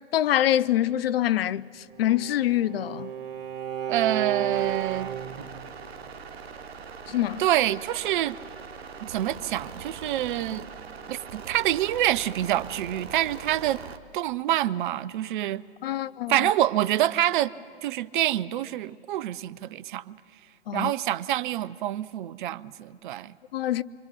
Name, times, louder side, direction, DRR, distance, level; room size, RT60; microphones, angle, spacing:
voice 1, 0.1-1.7 2.0-3.1 7.1-7.4 15.8-16.3 20.7-20.9 23.5-23.8, left 12 dB, 60° left, 0.6 m, -25 dB
Bowed string instrument, 1.9-5.5, right 9 dB, 35° right, 1.7 m, -32 dB
voice 2, 3.9-5.1 7.4-8.4 9.0-10.7 11.1-13.8 14.1-15.6 16.3-17.5 17.8-20.2 20.7-23.4, right 13 dB, 50° right, 0.6 m, -26 dB
sound 1, 4.5-14.0, right 5 dB, 70° right, 1.2 m, -42 dB
25.0 x 24.5 x 5.9 m
figure-of-eight pair, 110°, 33 cm